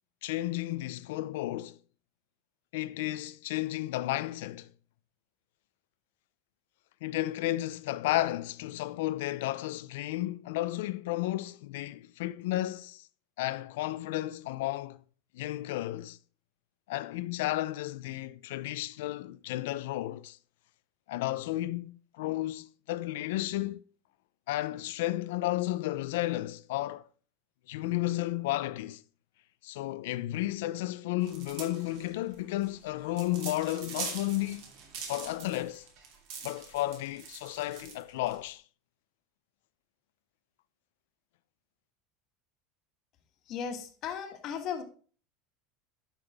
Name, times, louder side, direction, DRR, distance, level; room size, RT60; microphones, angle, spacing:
voice 1, 0.2-1.8 2.7-4.7 7.0-13.1 13.4-15.0 15.3-16.2 16.9-20.4 21.1-23.8 24.5-27.0 27.7-29.0 29.6-34.6 35.1-35.9 36.4-38.6, left 16 dB, 85° left, 0.5 m, -33 dB
sound 1, 31.2-38.5, right 5 dB, 60° right, 2.7 m, -43 dB
voice 2, 43.5-44.8, left 7 dB, 35° left, 1.5 m, -36 dB
11.5 x 5.8 x 3.5 m
cardioid pair, 170°, 0 cm